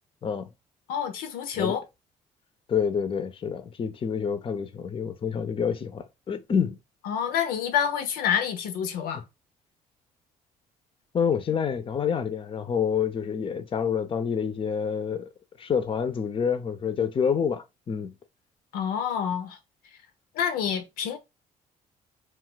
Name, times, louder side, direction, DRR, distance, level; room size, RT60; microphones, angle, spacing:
voice 1, 0.9-1.8 7.1-9.2 18.7-19.6 20.3-21.2, left 8 dB, 85° left, 0.6 m, -27 dB
voice 2, 2.7-6.8 9.1-9.2 11.1-15.3 15.6-18.2, left 7 dB, 35° left, 0.5 m, -27 dB
2.3 x 2.3 x 3.8 m
supercardioid pair, 75°, 15 cm